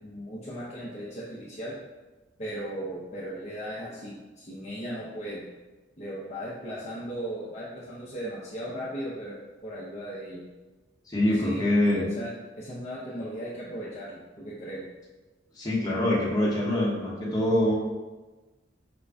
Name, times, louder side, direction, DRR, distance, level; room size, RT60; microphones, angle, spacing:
voice 1, 0.0-1.7 2.4-5.5 6.0-9.4 9.6-10.4 11.2-12.3 12.6-14.8, equal, 40° left, -8 dB, 0.7 m, -37 dB
voice 2, 11.1-12.0 15.6-17.7, left 1 dB, 20° left, -6 dB, 1.0 m, -24 dB
5.0 x 2.3 x 3.3 m, 1.2 s
head